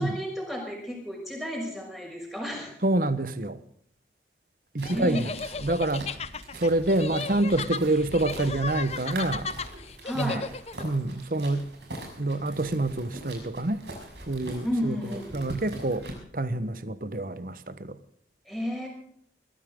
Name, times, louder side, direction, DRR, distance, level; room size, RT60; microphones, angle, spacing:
voice 1, 0.0-2.7 4.9-5.3 10.0-10.5 14.6-15.5 18.5-18.9, equal, ahead, 5.7 m, -32 dB
voice 2, 2.8-3.6 4.7-5.3 5.6-6.1 6.6-9.5 10.1-10.4 10.8-11.7 12.2-13.8 14.3-15.0 15.3-16.0 16.3-18.0, right 2 dB, 50° right, 1.2 m, -27 dB
sound 1, 4.8-10.8, left 4 dB, 35° left, 0.8 m, -35 dB
sound 2, 4.8-16.1, right 1 dB, 75° right, 6.3 m, -42 dB
22.0 x 14.5 x 3.7 m
head